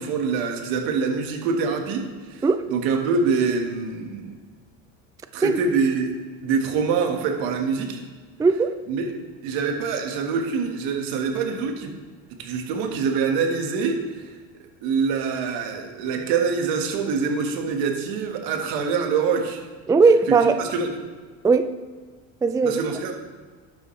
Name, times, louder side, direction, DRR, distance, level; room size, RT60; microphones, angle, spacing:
voice 1, 0.0-2.0 2.3-4.3 5.3-6.2 6.4-8.0 8.9-9.1 9.4-12.0 12.4-14.3 14.8-19.6 20.6-21.0 22.6-23.1, right 5 dB, 75° right, 1.7 m, -25 dB
voice 2, 8.4-8.7 19.9-20.6 21.4-21.7 22.4-22.8, right 4 dB, 10° right, 0.3 m, -18 dB
11.5 x 7.0 x 3.2 m
supercardioid pair, 95°, 36 cm